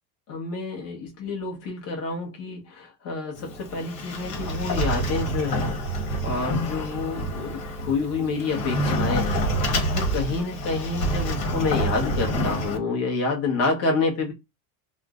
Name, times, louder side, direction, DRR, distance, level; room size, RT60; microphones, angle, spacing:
voice 1, 0.3-14.3, left 3 dB, 35° left, 0 dB, 0.9 m, -28 dB
Sliding door, 3.3-12.8, equal, 80° left, 1.1 m, -27 dB
2.4 x 2.0 x 3.4 m, 0.23 s
cardioid pair, 160°, 44 cm